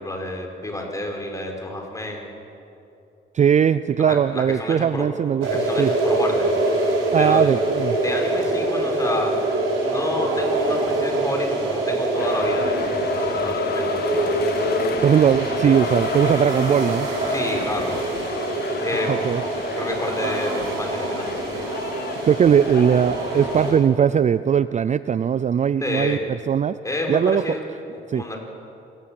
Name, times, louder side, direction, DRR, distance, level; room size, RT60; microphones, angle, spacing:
voice 1, 0.0-2.3 4.0-5.1 5.4-6.5 7.1-7.5 8.0-9.4 9.8-14.3 17.3-18.1 18.8-19.1 19.7-21.4 25.8-26.2 26.8-27.6 27.9-28.4, left 1 dB, 15° left, 1 dB, 5.0 m, -29 dB
voice 2, 3.3-5.5 5.8-5.9 7.1-8.0 15.0-17.1 19.1-19.4 22.2-26.2 26.5-26.7 27.1-27.4 28.1-28.2, right 8 dB, 35° right, 15 dB, 0.4 m, -19 dB
sound 1, 5.4-23.7, right 2 dB, 85° right, 5.2 m, -24 dB
sound 2, 12.2-23.8, left 9 dB, 55° left, 0.7 m, -32 dB
26.0 x 16.5 x 7.6 m, 2.7 s
cardioid pair, 90°, 20 cm